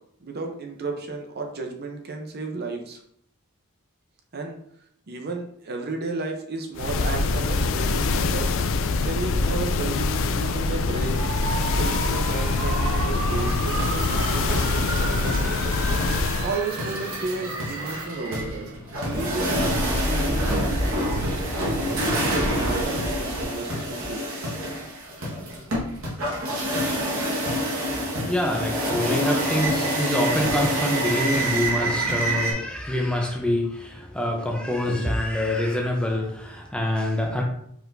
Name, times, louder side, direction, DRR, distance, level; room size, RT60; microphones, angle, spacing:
voice 1, 0.2-3.0 4.3-4.6 5.1-8.6 9.0-11.1 11.7-15.7 16.4-18.7 19.0-19.7 20.1-24.2, right 3 dB, 45° right, 2 dB, 0.7 m, -33 dB
sound 1, 6.8-16.6, left 3 dB, 60° left, 0.4 m, -24 dB
sound 2, 9.9-18.8, right 3 dB, 85° right, 0.9 m, -34 dB
sound 3, 13.3-32.5, equal, 65° right, 1.5 m, -27 dB
voice 2, 28.2-37.4, left 1 dB, 5° left, 0 dB, 0.6 m, -26 dB
4.6 x 4.2 x 2.6 m, 0.69 s
head